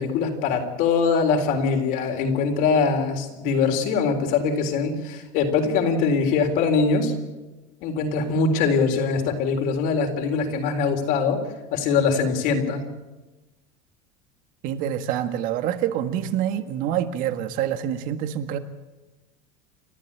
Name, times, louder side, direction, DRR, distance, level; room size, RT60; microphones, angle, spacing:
voice 1, 0.0-7.1 7.8-11.4 11.7-12.8, left 5 dB, 60° left, 3.9 m, -22 dB
voice 2, 14.6-18.6, right 10 dB, 55° right, 1.8 m, -26 dB
29.5 x 12.5 x 8.8 m
supercardioid pair, 130°, 17 cm